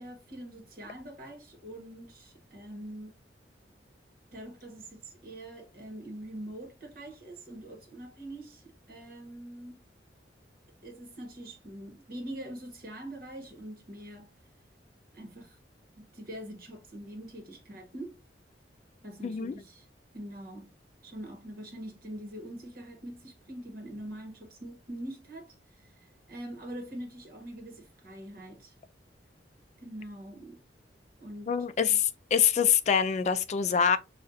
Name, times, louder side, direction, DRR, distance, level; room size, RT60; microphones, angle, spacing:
voice 1, 0.0-3.1 4.3-8.6 8.9-9.8 10.8-14.3 15.1-15.6 16.0-18.2 19.0-19.9 20.1-20.7 21.0-25.9 26.3-28.7 29.8-30.6 31.2-31.5, right 1 dB, 55° right, 1.3 m, -43 dB
voice 2, 19.2-19.6 31.5-34.0, left 7 dB, 40° left, 0.3 m, -25 dB
5.3 x 2.4 x 2.5 m
head